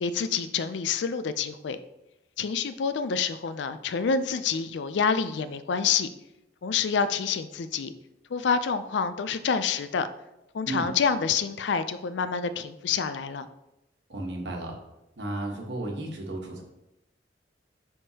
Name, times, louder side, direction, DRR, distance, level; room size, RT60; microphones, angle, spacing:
voice 1, 0.0-1.8 2.4-6.1 6.6-7.9 8.3-10.1 10.5-13.5, left 6 dB, 80° left, 12 dB, 0.4 m, -27 dB
voice 2, 14.1-14.8 15.2-16.6, right 2 dB, 75° right, 1 dB, 1.2 m, -33 dB
9.6 x 3.6 x 2.8 m, 0.90 s
head